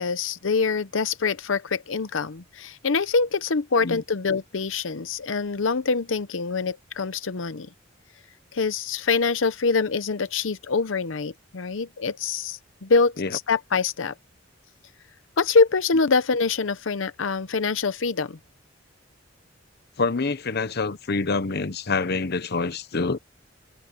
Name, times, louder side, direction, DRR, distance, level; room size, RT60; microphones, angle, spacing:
voice 1, 0.0-7.7 8.5-14.1 15.4-18.4, left 4 dB, 85° left, 0.8 m, -25 dB
voice 2, 20.0-23.2, left 4 dB, 55° left, 0.9 m, -26 dB
head